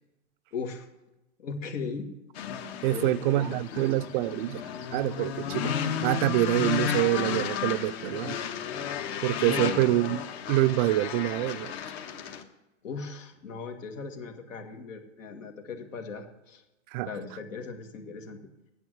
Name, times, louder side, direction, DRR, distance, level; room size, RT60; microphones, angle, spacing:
voice 1, 0.5-0.9 1.4-2.1 2.9-3.9 9.5-9.9 12.8-16.6 17.0-18.4, left 5 dB, 80° left, 2.0 m, -38 dB
sound 1, 2.3-12.4, left 8 dB, 55° left, 1.3 m, -33 dB
voice 2, 2.8-4.6 4.9-8.4 9.2-10.2 10.5-11.7 16.9-17.1, right 16 dB, 45° right, 0.4 m, -26 dB
9.2 x 8.0 x 7.9 m
hypercardioid pair, 120°, 38 cm